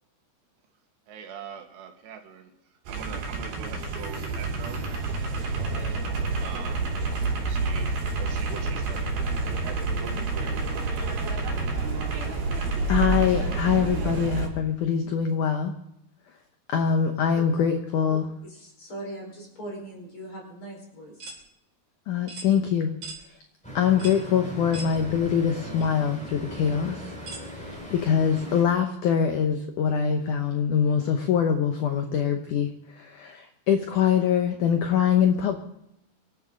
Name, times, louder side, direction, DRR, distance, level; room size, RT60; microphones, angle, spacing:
voice 1, 1.1-2.5 2.9-4.8 6.4-6.9 7.3-10.9, right 7 dB, 80° right, 4 dB, 3.6 m, -43 dB
sound 1, 2.9-14.5, right 3 dB, 60° right, 4.7 m, -28 dB
voice 2, 12.9-15.7 16.7-18.3 22.1-22.9 23.7-27.2 27.5-35.6, left 7 dB, 70° left, 5 dB, 1.9 m, -24 dB
voice 3, 18.4-21.2, right 1 dB, 30° left, 0 dB, 5.3 m, -40 dB
sound 2, 21.2-21.4 22.3-22.5 23.0-23.2 24.0-24.2 24.7-24.9 25.8-25.9 27.3-27.5, right 2 dB, 40° right, 4.1 m, -39 dB
Traffic noise roadway noise, 23.6-28.6, right 1 dB, ahead, 5.2 m, -39 dB
25.5 x 11.5 x 3.9 m, 0.79 s
omnidirectional pair, 4.9 m